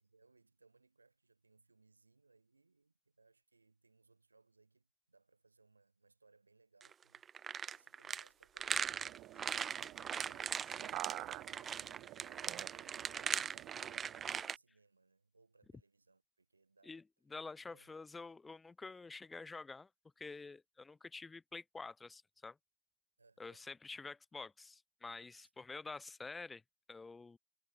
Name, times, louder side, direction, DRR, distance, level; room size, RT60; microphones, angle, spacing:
voice 1, 0.0-14.1 14.4-17.0 17.7-18.0 23.2-23.7 25.3-25.5, right 3 dB, 80° right, 7.3 m, -70 dB
sound 1, 6.8-14.6, right 7 dB, 20° right, 0.3 m, -40 dB
sound 2, 8.7-14.4, right 18 dB, 35° right, 0.8 m, -49 dB
voice 2, 17.3-19.9 20.2-22.6 23.4-26.6 26.9-27.4, left 4 dB, 10° left, 0.7 m, -48 dB
figure-of-eight pair, 90°, 0 cm